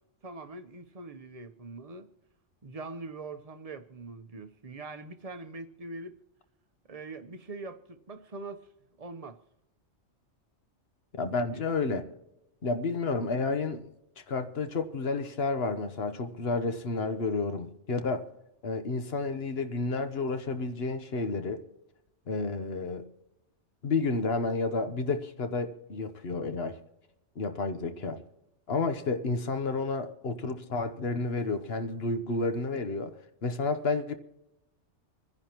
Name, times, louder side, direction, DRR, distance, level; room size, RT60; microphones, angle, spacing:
voice 1, 0.2-2.1 2.6-6.2 6.9-8.7 9.0-9.4 11.5-11.6, right 3 dB, 35° right, 0.9 m, -42 dB
voice 2, 11.1-12.0 12.6-13.8 14.3-18.3 18.6-21.6 22.3-23.1 23.8-26.8 27.4-28.2 28.7-33.2 33.4-34.1, left 3 dB, 60° left, 1.3 m, -31 dB
26.5 x 10.5 x 3.0 m
omnidirectional pair, 1.2 m